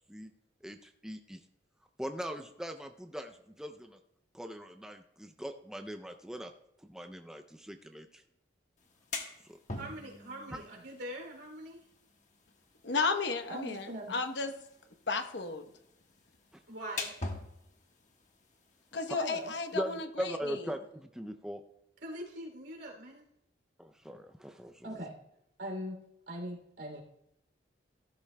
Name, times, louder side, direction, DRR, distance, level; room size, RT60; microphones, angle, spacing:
voice 1, 0.6-1.4 2.0-4.0 4.3-6.5 6.8-8.2 9.5-9.6 10.5-10.6 16.5-16.6 19.1-19.2 19.8-21.6 23.8-25.0, equal, 5° right, 0.4 m, -40 dB
sound 1, 8.8-20.0, left 3 dB, 40° left, 1.3 m, -46 dB
voice 2, 9.8-11.8 13.5-14.1 16.7-17.1 19.2-19.5 22.0-23.2 24.8-25.2 25.6-25.9 26.3-27.0, equal, 70° right, 2.9 m, -41 dB
voice 3, 12.8-14.5 15.1-15.7 18.9-20.7, left 4 dB, 70° left, 0.9 m, -33 dB
15.0 x 13.0 x 2.2 m
head